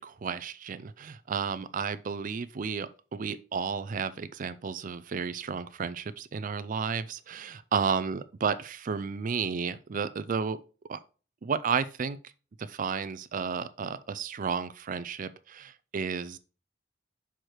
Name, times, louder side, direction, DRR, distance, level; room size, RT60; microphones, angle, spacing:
voice 1, 0.0-10.6 10.9-11.0 11.4-12.2 12.7-16.4, right 6 dB, 40° right, 0.4 m, -32 dB
6.5 x 4.6 x 4.4 m
head